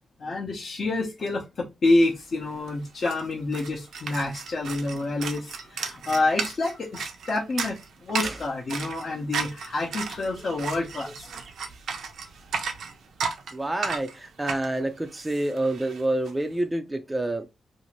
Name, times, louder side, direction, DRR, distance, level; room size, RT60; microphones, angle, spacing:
voice 1, 0.2-11.3, left 2 dB, 45° left, 0.7 m, -27 dB
sound 1, 2.2-2.3 2.5-16.3, right 5 dB, 85° right, 0.5 m, -35 dB
voice 2, 13.5-17.5, right 1 dB, 10° right, 0.3 m, -28 dB
2.6 x 2.5 x 3.0 m
wide cardioid pair, 135°, 0 cm